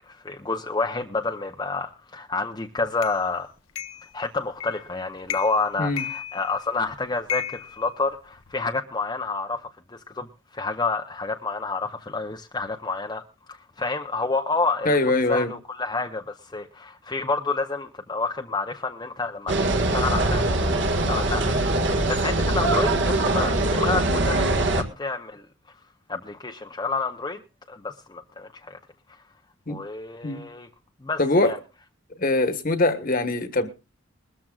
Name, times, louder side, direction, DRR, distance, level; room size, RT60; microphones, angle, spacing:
voice 1, 0.0-3.5 4.1-10.3 10.5-15.0 15.3-25.4 26.1-27.4 27.7-28.8 29.7-30.7 31.0-31.6, left 3 dB, 20° left, 0.7 m, -29 dB
sound 1, 3.0-3.2 3.8-4.1 4.6-4.9 5.2-5.7 6.0-6.8 7.3-8.5, left 10 dB, 85° left, 0.9 m, -34 dB
voice 2, 14.8-15.5 29.7-29.8 30.2-30.4 31.2-31.5 32.2-33.7, left 2 dB, 40° left, 1.4 m, -22 dB
sound 2, 19.5-24.8, right 2 dB, 55° right, 1.7 m, -22 dB
21.5 x 13.5 x 2.4 m
head